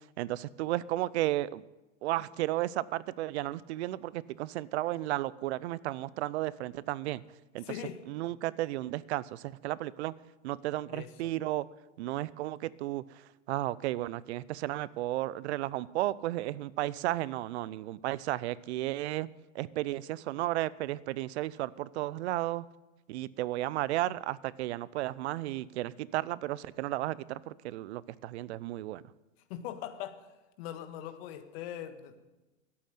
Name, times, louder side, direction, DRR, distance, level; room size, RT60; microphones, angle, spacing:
voice 1, 0.2-1.6 2.0-7.2 7.5-7.7 8.1-10.1 10.4-11.7 12.0-13.0 13.5-19.3 19.5-22.7 23.1-29.0, right 16 dB, 60° right, 20 dB, 0.7 m, -33 dB
voice 2, 7.6-8.0 10.9-11.3 29.5-30.3 30.6-32.3, left 11 dB, 50° left, 9 dB, 1.6 m, -41 dB
12.5 x 8.7 x 9.4 m, 1.1 s
hypercardioid pair, 115°, 38 cm